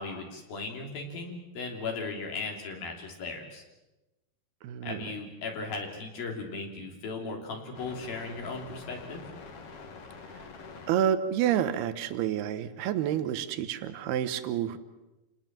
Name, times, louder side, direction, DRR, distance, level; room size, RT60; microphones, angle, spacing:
voice 1, 0.0-3.6 4.8-9.3, left 3 dB, 65° left, 1 dB, 5.0 m, -37 dB
voice 2, 4.6-5.1 10.9-14.8, right 10 dB, 85° right, 11 dB, 3.1 m, -29 dB
sound 1, 7.7-10.9, left 4 dB, 45° left, 2.4 m, -46 dB
28.5 x 19.0 x 7.5 m, 1.0 s
omnidirectional pair, 4.5 m